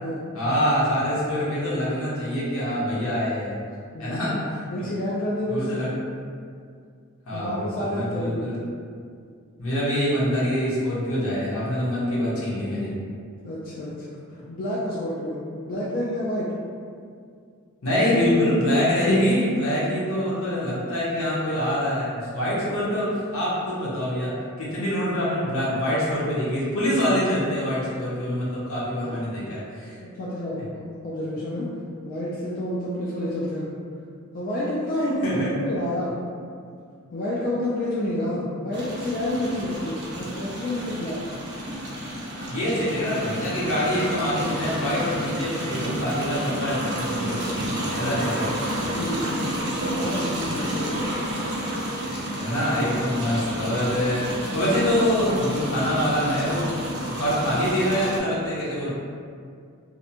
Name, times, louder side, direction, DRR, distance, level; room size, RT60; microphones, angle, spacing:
voice 1, 0.3-3.6 4.0-4.6 5.5-5.9 7.3-8.6 9.6-12.9 17.8-30.0 35.0-35.5 42.5-48.5 52.0-56.7 57.2-58.9, equal, 70° left, -8 dB, 0.8 m, -25 dB
voice 2, 3.9-4.3 4.7-5.8 7.3-8.4 13.4-16.5 29.0-29.2 29.4-29.5 30.0-31.7 32.0-33.7 34.3-36.1 37.1-41.2 48.1-48.2 48.9-49.6 49.9-51.1, left 1 dB, 40° left, -7 dB, 0.3 m, -29 dB
sound 1, 38.7-58.2, right 1 dB, 55° right, 0.5 m, -30 dB
2.6 x 2.1 x 2.7 m, 2.2 s
head